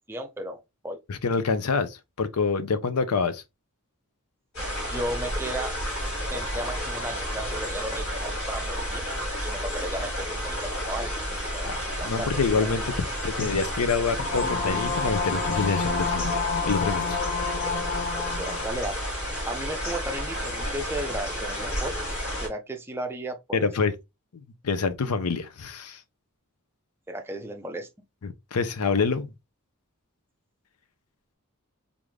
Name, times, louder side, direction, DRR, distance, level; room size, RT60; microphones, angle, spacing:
voice 1, 0.1-1.0 4.9-5.8 6.3-9.1 9.4-12.8 18.2-19.0 19.5-22.1 22.4-23.7 27.1-27.9, right 1 dB, 10° right, 0.5 m, -35 dB
voice 2, 1.1-3.4 11.6-12.9 13.2-16.3 16.6-17.2 23.5-23.9 24.6-26.0 28.2-29.3, left 5 dB, 85° left, 0.6 m, -26 dB
sound 1, 4.5-22.5, equal, 60° left, 2.2 m, -31 dB
sound 2, 14.2-18.7, left 5 dB, 45° left, 0.6 m, -29 dB
3.6 x 2.5 x 3.2 m
head